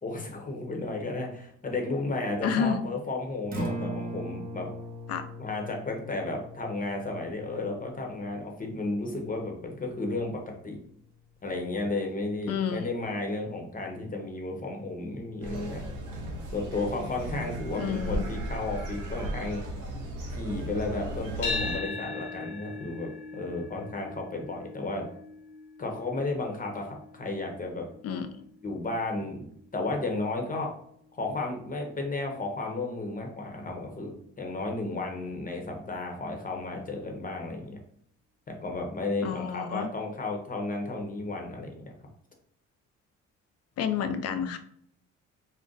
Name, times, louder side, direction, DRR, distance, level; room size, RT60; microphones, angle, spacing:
voice 1, 0.0-4.7 5.4-10.8 11.4-15.8 16.5-19.6 20.3-25.1 25.8-27.9 28.6-30.7 31.1-37.8 38.5-41.9, left 2 dB, 30° left, 1 dB, 0.8 m, -33 dB
voice 2, 2.4-2.8 5.1-5.2 12.5-12.9 17.8-18.2 28.0-28.3 39.2-39.9 43.8-44.6, left 7 dB, 55° left, 8 dB, 0.5 m, -29 dB
Acoustic guitar, 3.4-11.6, equal, 30° right, 0.8 m, -41 dB
sound 1, 15.4-21.8, right 1 dB, 85° right, 0.8 m, -36 dB
sound 2, 21.4-29.6, left 4 dB, 90° left, 1.1 m, -39 dB
2.5 x 2.1 x 3.8 m, 0.68 s
cardioid pair, 90°, 30 cm